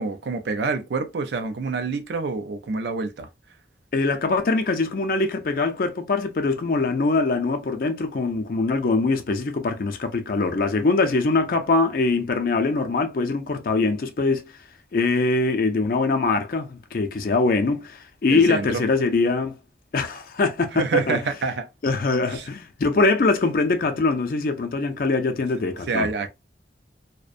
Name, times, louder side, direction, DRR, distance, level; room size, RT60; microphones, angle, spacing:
voice 1, 0.0-3.3 18.3-18.8 20.7-21.7 22.3-22.4 25.9-26.3, right 4 dB, 75° right, 0.4 m, -27 dB
voice 2, 3.9-14.5 14.9-19.5 19.9-21.2 21.8-26.1, left 3 dB, 50° left, 0.4 m, -23 dB
2.5 x 2.1 x 2.4 m
head